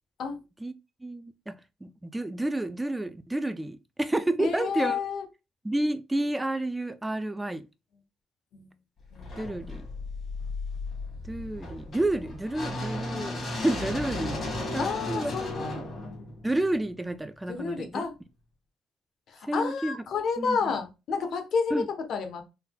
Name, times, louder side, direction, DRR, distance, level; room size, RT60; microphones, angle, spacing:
voice 1, 1.0-1.5 1.8-5.0 5.6-7.6 9.4-9.8 11.3-14.4 14.7-15.3 16.4-18.0 19.5-20.0 20.4-20.6 21.7-21.9, right 1 dB, 10° right, 0.4 m, -30 dB
voice 2, 4.4-5.2 8.5-8.7 9.1-9.6 14.8-15.8 17.5-18.1 19.3-22.4, left 5 dB, 70° left, 1.0 m, -30 dB
sound 1, 9.1-17.2, left 2 dB, 50° left, 1.8 m, -35 dB
4.1 x 3.9 x 2.3 m
cardioid pair, 90°, 0 cm